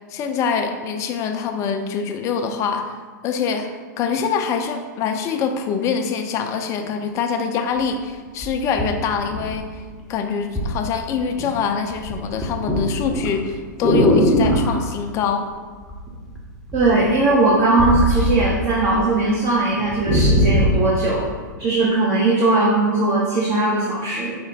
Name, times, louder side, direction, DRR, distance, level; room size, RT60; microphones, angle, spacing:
voice 1, 0.1-3.0 3.2-9.8 10.1-15.5, left 6 dB, 30° left, 5 dB, 0.4 m, -24 dB
sound 1, 7.8-7.9 8.4-9.9 10.6-10.8 11.1-11.6 11.9-14.8 15.9-16.4 16.7-19.0 19.3-19.4 19.7-20.9 21.5-21.6, equal, ahead, 0.7 m, -20 dB
voice 2, 16.7-21.2 21.6-24.4, right 2 dB, 35° right, -4 dB, 0.7 m, -19 dB
4.9 x 2.1 x 4.0 m, 1.5 s
hypercardioid pair, 110°, 10 cm